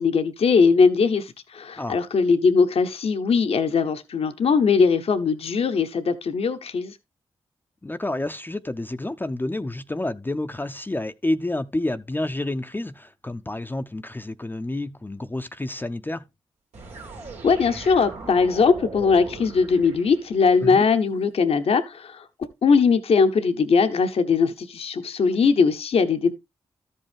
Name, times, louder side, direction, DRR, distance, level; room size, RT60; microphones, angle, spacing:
voice 1, 0.0-7.0 17.4-22.3 22.6-26.3, left 5 dB, 65° left, 0.9 m, -20 dB
voice 2, 7.8-16.2 20.6-20.8, left 1 dB, 15° left, 0.6 m, -29 dB
sound 1, 16.7-20.7, right 3 dB, 85° right, 2.2 m, -39 dB
13.0 x 5.4 x 3.5 m
supercardioid pair, 45°, 11 cm